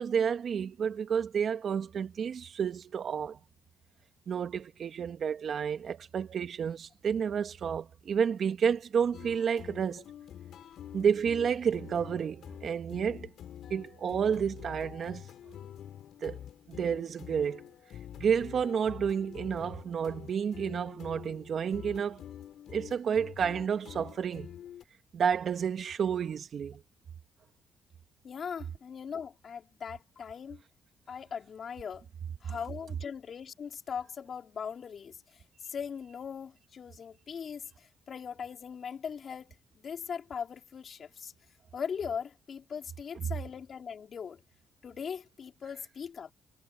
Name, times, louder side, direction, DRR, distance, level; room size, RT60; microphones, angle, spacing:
voice 1, 0.0-3.4 4.3-10.0 10.9-13.3 13.7-15.2 16.2-16.4 16.7-17.6 18.2-22.2 22.7-24.5 25.1-26.8, right 7 dB, 55° right, 2.1 m, -30 dB
sound 1, 9.1-24.8, left 10 dB, 70° left, 6.2 m, -47 dB
voice 2, 28.2-30.6 31.1-32.1 32.4-41.3 41.7-44.4 44.8-46.3, left 7 dB, 50° left, 4.1 m, -40 dB
cardioid pair, 90°, 0 cm